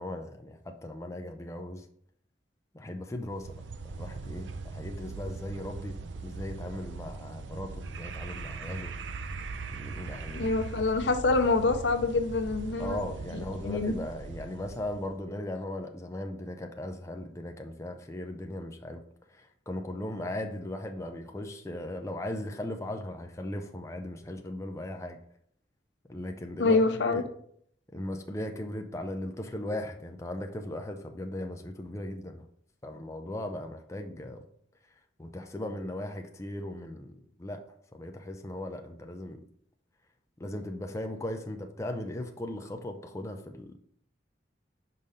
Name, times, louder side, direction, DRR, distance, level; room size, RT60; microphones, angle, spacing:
voice 1, 0.0-1.8 2.7-3.6 3.8-6.0 6.2-8.9 9.7-10.5 12.8-19.0 19.3-25.2 26.1-27.3 27.9-32.5 32.8-34.4 35.2-37.6 37.9-39.4 40.4-43.8, left 1 dB, 15° left, 4 dB, 0.5 m, -38 dB
sound 1, 3.2-15.2, right 4 dB, 80° right, 0.5 m, -40 dB
voice 2, 10.3-13.0 13.6-13.9 26.6-27.2, left 3 dB, 70° left, 8 dB, 0.7 m, -26 dB
5.5 x 5.1 x 4.1 m, 0.66 s
head